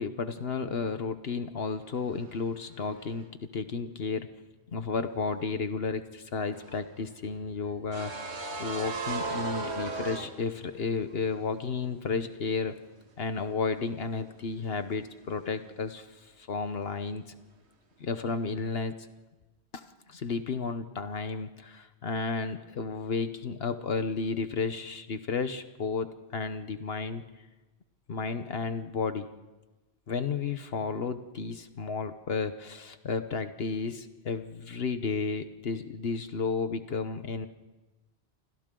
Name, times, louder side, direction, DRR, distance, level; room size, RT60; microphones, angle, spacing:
voice 1, 0.0-4.3 4.7-12.8 13.2-17.2 18.0-19.1 19.7-27.2 28.1-29.3 30.1-37.5, left 4 dB, 65° left, 9 dB, 1.2 m, -33 dB
sound 1, 6.5-11.0 11.2-11.4 13.5-13.9 14.2-14.4, right 3 dB, 85° right, 1.9 m, -36 dB
29.0 x 26.0 x 3.8 m, 1.1 s
omnidirectional pair, 1.1 m